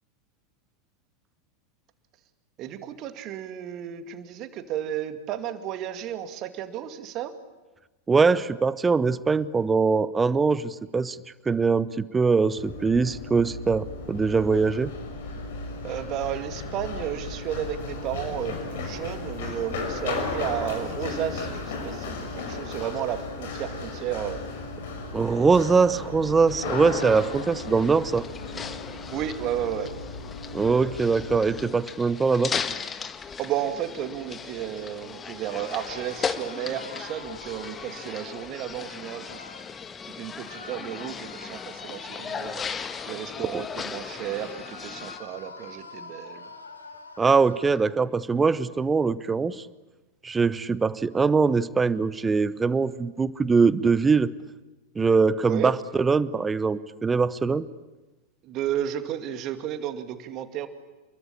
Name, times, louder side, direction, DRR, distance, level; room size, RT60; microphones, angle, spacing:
voice 1, 2.6-7.3 15.8-24.4 29.1-29.9 33.4-39.4 40.2-42.7 43.1-46.5 55.4-55.8 58.4-60.7, right 10 dB, 35° right, 8 dB, 2.3 m, -33 dB
voice 2, 8.1-11.2 11.5-14.9 25.1-28.2 30.5-32.6 47.2-49.7 50.2-54.3 55.0-57.7, right 4 dB, 15° right, 18 dB, 0.8 m, -22 dB
Run, 12.6-31.6, left 3 dB, 55° left, 6.3 m, -35 dB
sound 1, 26.5-45.2, left 6 dB, 20° left, 1.4 m, -37 dB
sound 2, 35.3-39.7 40.4-43.6 43.9-47.9, left 3 dB, 75° left, 3.5 m, -46 dB
29.0 x 22.5 x 8.7 m, 1.1 s
figure-of-eight pair, 90°, 0 cm